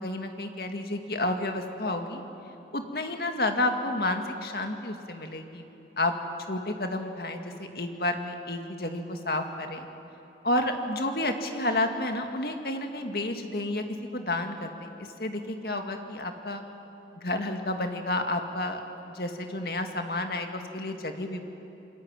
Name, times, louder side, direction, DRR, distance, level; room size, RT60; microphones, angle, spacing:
voice 1, 0.0-2.2 2.7-5.7 6.0-6.1 6.5-9.9 10.4-13.9 14.1-14.9 15.2-16.6 17.2-18.8 19.1-21.4, left 1 dB, 60° left, 5 dB, 2.2 m, -30 dB
28.0 x 22.0 x 9.1 m, 3.0 s
head